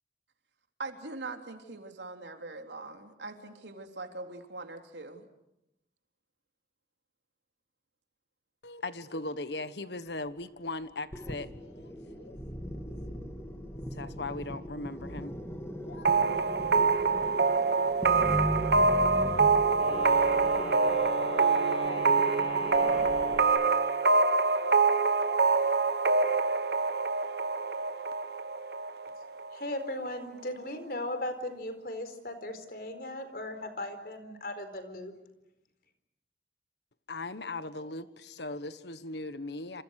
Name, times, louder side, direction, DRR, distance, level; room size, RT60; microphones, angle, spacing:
voice 1, 0.8-5.3, right 3 dB, 85° right, 5 dB, 3.5 m, -42 dB
voice 2, 8.6-12.3 13.9-15.4 15.8-16.9 37.1-39.8, left 2 dB, 75° left, 13 dB, 1.4 m, -39 dB
sound 1, 11.1-23.4, equal, 15° left, 2.6 m, -38 dB
sound 2, 16.0-29.6, right 4 dB, 65° right, 1.1 m, -25 dB
Wind instrument woodwind instrument, 19.7-24.1, left 3 dB, 30° left, 7.4 m, -39 dB
voice 3, 29.5-35.1, left 1 dB, 55° left, 9 dB, 4.4 m, -37 dB
28.5 x 28.0 x 6.6 m, 0.85 s
head